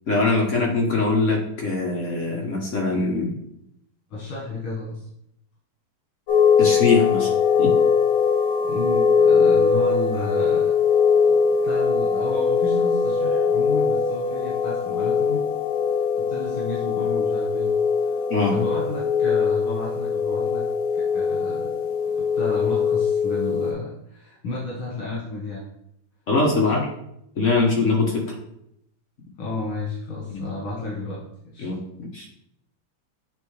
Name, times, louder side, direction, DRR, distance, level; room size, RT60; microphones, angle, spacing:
voice 1, 0.1-3.3 6.6-7.3 7.6-7.7 18.3-18.5 26.3-26.8 27.4-28.2 30.3-30.4 31.6-32.3, left 3 dB, 50° left, -1 dB, 1.1 m, -22 dB
voice 2, 4.1-5.1 8.6-10.7 11.3-15.4 16.2-18.1 18.5-20.7 21.1-21.7 22.1-25.7 26.6-26.9 29.4-31.2 31.4-31.7, left 2 dB, 85° left, -6 dB, 2.2 m, -32 dB
sound 1, 6.3-23.7, left 6 dB, 70° left, 2.4 m, -21 dB
8.8 x 3.7 x 3.2 m, 0.77 s
omnidirectional pair, 2.2 m